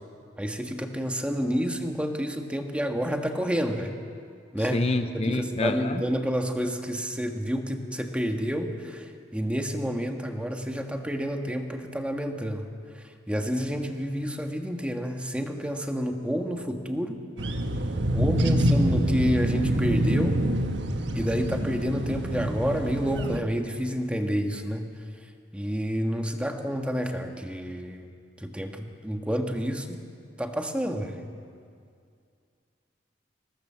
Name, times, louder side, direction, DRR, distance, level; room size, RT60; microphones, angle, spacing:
voice 1, 0.4-3.9 4.5-4.8 5.1-12.7 12.9-17.2 18.1-20.4 21.1-24.9 25.5-28.1 28.4-30.0 30.4-31.2, equal, 5° right, 4 dB, 1.6 m, -29 dB
voice 2, 4.7-6.0, left 2 dB, 35° left, 8 dB, 0.7 m, -27 dB
sound 1, 17.4-23.4, equal, 80° right, 1.4 m, -25 dB
24.5 x 18.5 x 7.6 m, 2.3 s
head